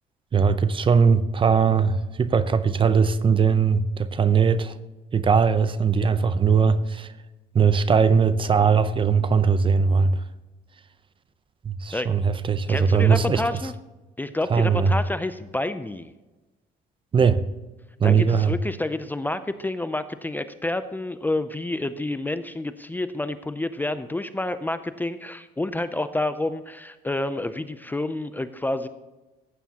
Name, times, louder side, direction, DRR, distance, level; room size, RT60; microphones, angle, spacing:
voice 1, 0.3-4.7 5.1-7.1 7.5-10.2 11.7-13.4 14.5-14.9 17.1-17.4 18.0-18.5, right 6 dB, 30° right, 0.7 m, -20 dB
voice 2, 12.7-13.7 14.2-16.1 18.0-28.9, left 2 dB, 10° left, 0.5 m, -29 dB
15.0 x 9.3 x 2.9 m
cardioid pair, 110°, 17 cm